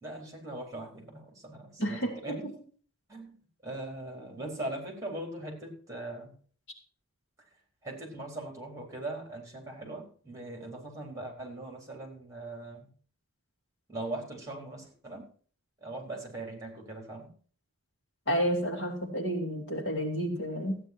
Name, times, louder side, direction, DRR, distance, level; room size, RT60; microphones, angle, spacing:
voice 1, 0.0-2.4 3.1-3.4 3.6-6.3 7.8-12.9 13.9-15.3 15.8-17.3, right 2 dB, 15° right, 0 dB, 4.1 m, -40 dB
voice 2, 1.8-2.4 18.3-20.8, equal, 50° left, 1 dB, 2.8 m, -30 dB
14.5 x 9.6 x 4.5 m, 0.42 s
head